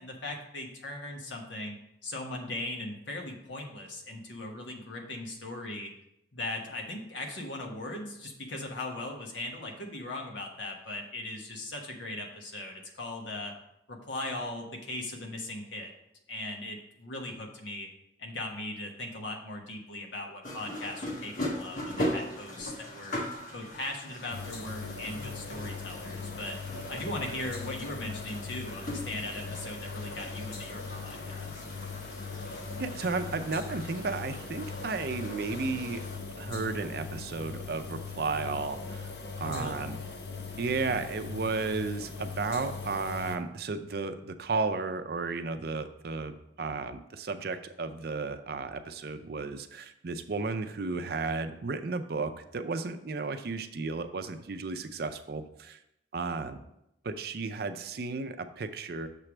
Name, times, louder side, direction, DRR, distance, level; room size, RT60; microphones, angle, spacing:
voice 1, 0.0-1.8 2.0-5.9 6.3-13.5 13.9-15.9 16.3-17.9 18.2-23.2 23.5-26.6 26.9-31.6 39.4-39.8, left 1 dB, 80° left, 1 dB, 1.2 m, -39 dB
sound 1, 20.4-36.2, left 1 dB, 45° left, 1.1 m, -40 dB
sound 2, 24.3-43.4, left 4 dB, 60° left, 0.7 m, -40 dB
voice 2, 32.8-36.0 36.4-39.1 39.4-40.0 40.6-55.8 56.1-56.6 57.0-59.1, right 4 dB, 55° right, 8 dB, 0.5 m, -33 dB
6.8 x 3.3 x 6.0 m, 0.81 s
head